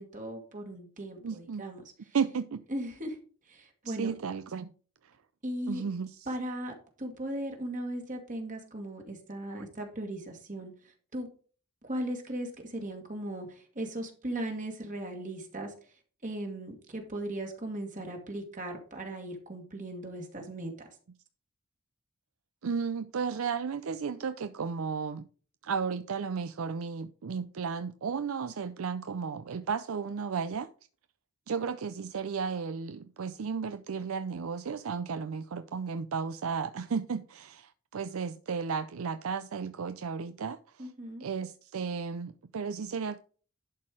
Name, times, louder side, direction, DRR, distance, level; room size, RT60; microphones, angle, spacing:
voice 1, 0.0-2.2 2.7-3.2 3.5-4.1 5.4-5.8 6.3-11.3 11.8-15.7 16.2-21.0 40.8-41.3, right 1 dB, 35° right, 1.7 m, -38 dB
voice 2, 1.2-1.6 2.1-2.6 3.9-4.7 5.7-6.1 9.5-9.6 22.6-25.3 25.6-30.7 31.5-40.9 41.2-43.2, right 5 dB, 70° right, 0.5 m, -34 dB
11.5 x 4.4 x 4.8 m
head